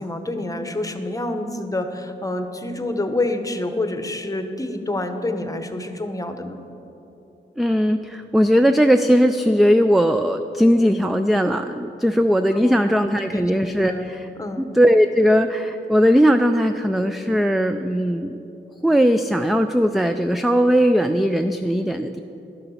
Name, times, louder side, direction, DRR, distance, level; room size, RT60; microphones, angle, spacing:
voice 1, 0.0-6.6 12.5-13.0 13.3-14.1 14.4-14.7, left 2 dB, 15° left, 7 dB, 0.9 m, -28 dB
voice 2, 7.6-14.3 14.6-18.4 18.8-22.2, equal, ahead, 8 dB, 0.3 m, -18 dB
12.0 x 6.6 x 5.7 m, 2.9 s
cardioid pair, 70°, 21 cm